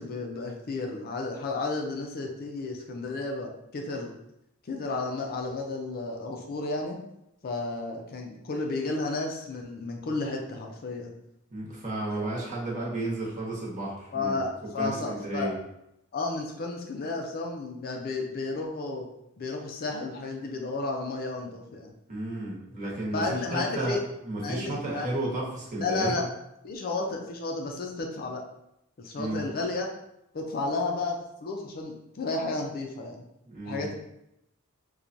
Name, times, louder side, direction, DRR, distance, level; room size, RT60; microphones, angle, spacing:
voice 1, 0.0-4.1 4.7-7.0 7.4-11.1 14.1-15.5 16.1-19.1 19.4-21.9 23.1-24.0 24.4-25.1 25.8-26.2 26.6-28.4 29.0-29.9 30.3-33.2 33.7-33.9, left 3 dB, 45° left, 2 dB, 0.4 m, -32 dB
voice 2, 11.5-14.4 14.8-15.5 22.1-24.0 24.2-26.2 29.2-29.5 33.5-33.9, right 1 dB, 35° right, -5 dB, 1.0 m, -33 dB
4.4 x 2.2 x 2.6 m, 0.82 s
head